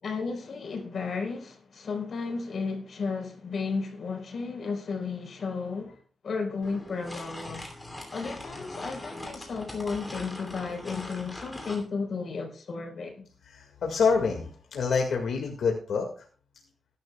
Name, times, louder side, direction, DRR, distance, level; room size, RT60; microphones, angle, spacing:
voice 1, 0.0-6.0 6.2-7.7 8.1-13.3, left 4 dB, 50° left, 4.2 m, -33 dB
sound 1, 6.6-11.9, left 1 dB, 10° left, 2.8 m, -41 dB
voice 2, 13.4-16.2, left 5 dB, 75° left, 2.0 m, -27 dB
19.5 x 11.0 x 2.4 m
wide cardioid pair, 175°, 0 cm